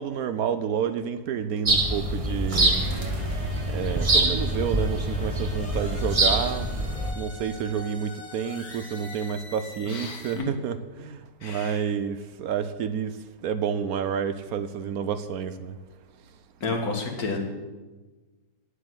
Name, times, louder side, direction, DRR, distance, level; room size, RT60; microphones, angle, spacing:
voice 1, 0.0-2.8 3.7-6.8 7.2-15.8, right 7 dB, 75° right, 1.0 m, -29 dB
sound 1, 1.7-7.1, right 2 dB, 30° right, 0.8 m, -25 dB
sound 2, 2.6-10.4, left 2 dB, 85° left, 3.5 m, -43 dB
voice 2, 9.9-10.5 11.4-11.8 16.6-17.4, left 3 dB, 65° left, 2.1 m, -31 dB
9.8 x 8.2 x 7.8 m
omnidirectional pair, 1.7 m